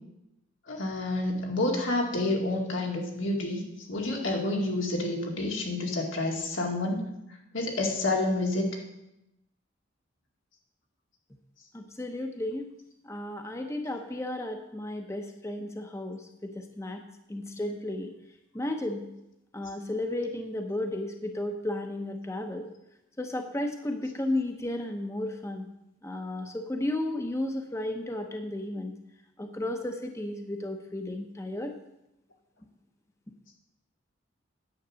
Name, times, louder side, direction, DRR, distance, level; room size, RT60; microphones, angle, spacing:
voice 1, 0.7-7.1 7.5-8.8, left 2 dB, 90° left, 0 dB, 2.3 m, -29 dB
voice 2, 11.7-12.7 13.0-17.0 17.3-18.1 18.5-19.0 19.5-22.7 23.2-25.7 26.0-28.9 29.4-31.7, left 1 dB, 15° left, 4 dB, 0.8 m, -33 dB
9.6 x 8.0 x 6.3 m, 0.89 s
head